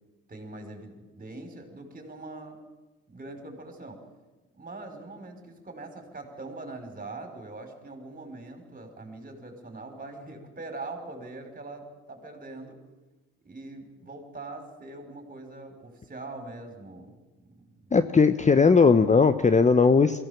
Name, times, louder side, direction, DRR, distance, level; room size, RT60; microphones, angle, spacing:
voice 1, 0.3-2.6 3.1-4.0 4.5-12.8 13.4-18.1, right 2 dB, 25° right, 5 dB, 5.3 m, -42 dB
voice 2, 17.9-20.2, left 5 dB, 20° left, 11 dB, 1.0 m, -18 dB
22.5 x 16.0 x 7.3 m, 1.2 s
supercardioid pair, 75°, 34 cm